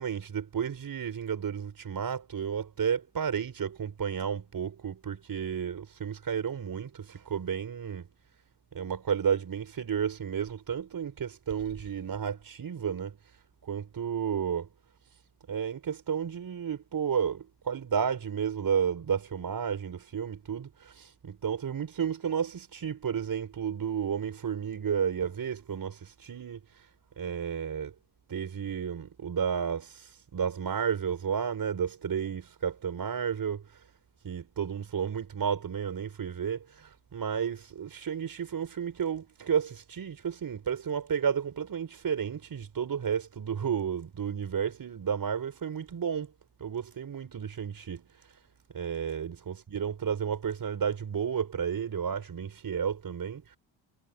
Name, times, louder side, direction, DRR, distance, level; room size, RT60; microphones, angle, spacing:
voice 1, 0.0-8.1 8.7-13.2 13.6-14.7 15.5-26.6 27.2-27.9 28.3-33.6 34.2-46.3 46.6-48.1 48.7-53.4, right 7 dB, 45° right, 5.3 m, -32 dB
cardioid pair, 105°, 47 cm